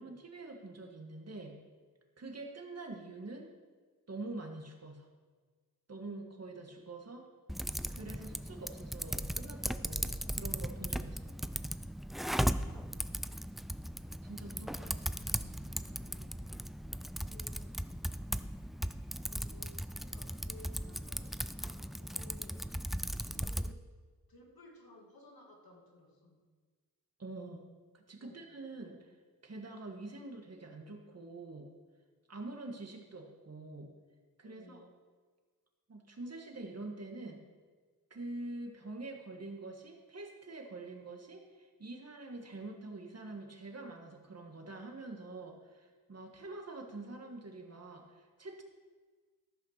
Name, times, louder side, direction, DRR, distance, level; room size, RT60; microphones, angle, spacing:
voice 1, 0.0-1.6 2.2-3.5 4.1-5.1 5.9-7.3 7.9-11.3 14.2-15.7 27.2-29.1 29.4-31.7 32.3-33.9 34.4-34.9 35.9-37.4 38.1-48.6, right 2 dB, 45° right, 3 dB, 1.8 m, -46 dB
Typing, 7.5-23.7, equal, ahead, 0.3 m, -37 dB
voice 2, 14.5-15.0 15.8-16.5 17.3-18.0 19.2-19.8 20.0-22.7 23.3-23.9 24.3-26.4 28.2-28.4 34.4-34.9, left 1 dB, 85° left, 0 dB, 2.3 m, -58 dB
14.0 x 5.7 x 6.6 m, 1.5 s
wide cardioid pair, 90°, 35 cm